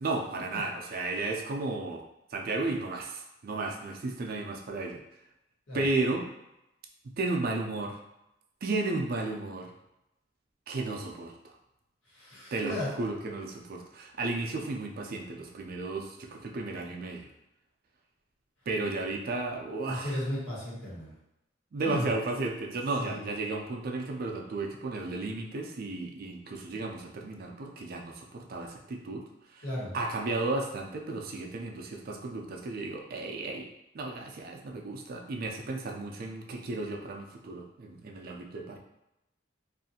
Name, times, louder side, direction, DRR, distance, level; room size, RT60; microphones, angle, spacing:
voice 1, 0.0-2.0 2.3-5.0 5.7-6.2 7.2-8.0 8.6-9.7 10.7-11.5 12.5-17.3 18.7-20.2 21.7-29.2 29.5-29.6 29.9-33.7 33.9-38.8, right 3 dB, 50° right, 1 dB, 0.4 m, -34 dB
voice 2, 12.1-12.9 19.9-21.1 21.8-22.1 23.0-23.2 29.6-29.9, left 1 dB, 70° left, -7 dB, 1.2 m, -35 dB
2.6 x 2.4 x 2.7 m, 0.88 s
head